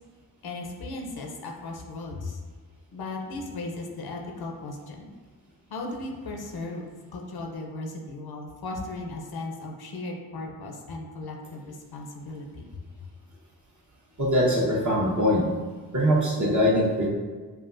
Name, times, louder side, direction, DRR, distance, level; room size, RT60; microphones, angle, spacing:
voice 1, 0.4-2.4 2.9-5.1 5.7-12.6, left 2 dB, 60° left, 1 dB, 0.8 m, -36 dB
voice 2, 14.2-15.4 15.9-17.1, equal, 45° right, -5 dB, 1.3 m, -22 dB
5.4 x 2.3 x 2.6 m, 1.4 s
supercardioid pair, 45°, 41 cm